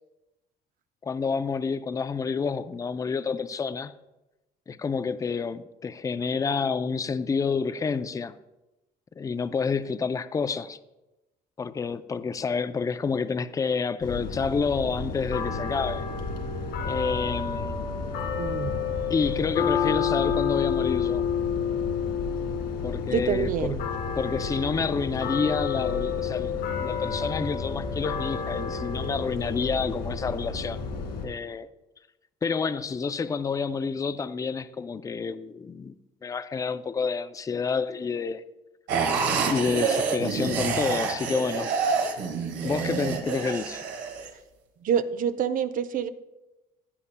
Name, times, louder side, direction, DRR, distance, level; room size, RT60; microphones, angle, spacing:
voice 1, 1.0-3.9 4.7-8.3 9.2-10.8 11.6-16.0 16.8-17.9 19.1-21.3 22.8-23.8 24.1-30.8 31.2-31.7 32.4-36.0 36.2-38.4 39.4-41.8 42.6-43.8, left 5 dB, 20° left, 0.4 m, -29 dB
sound 1, 14.0-31.2, left 6 dB, 90° left, 2.3 m, -29 dB
voice 2, 18.4-18.8 23.1-23.8 44.8-46.1, right 8 dB, 55° right, 0.6 m, -27 dB
sound 2, 38.9-44.3, right 5 dB, 90° right, 1.7 m, -27 dB
15.5 x 9.5 x 2.2 m
cardioid pair, 110°, 17 cm